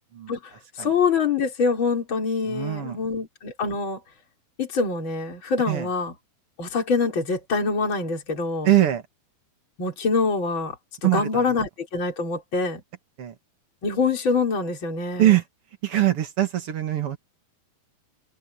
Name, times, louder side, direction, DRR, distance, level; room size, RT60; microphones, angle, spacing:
voice 1, 0.8-4.0 4.6-6.1 6.6-8.7 9.8-10.8 11.0-12.8 13.8-15.4, left 4 dB, 30° left, 5.3 m, -25 dB
voice 2, 2.5-3.0 5.7-5.9 8.6-9.0 11.0-11.4 13.2-13.3 15.2-15.4 15.8-17.2, right 13 dB, 45° right, 2.1 m, -22 dB
omnidirectional pair, 4.9 m